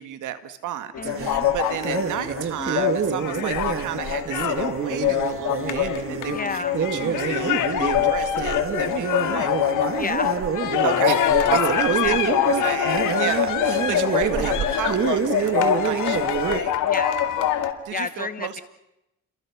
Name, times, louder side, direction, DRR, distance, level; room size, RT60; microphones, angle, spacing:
voice 1, 0.0-9.5 10.8-16.7 17.8-18.6, right 11 dB, 85° right, 9 dB, 2.0 m, -32 dB
sound 1, 0.9-17.7, left 10 dB, 85° left, 2.2 m, -24 dB
voice 2, 1.0-1.5 6.3-6.7 10.0-10.4 12.0-12.8 16.8-17.2 17.9-18.6, left 4 dB, 30° left, 12 dB, 0.9 m, -31 dB
sound 2, 1.0-16.6, right 6 dB, 45° right, 1.8 m, -27 dB
30.0 x 22.0 x 6.2 m, 0.89 s
cardioid pair, 90°, 30 cm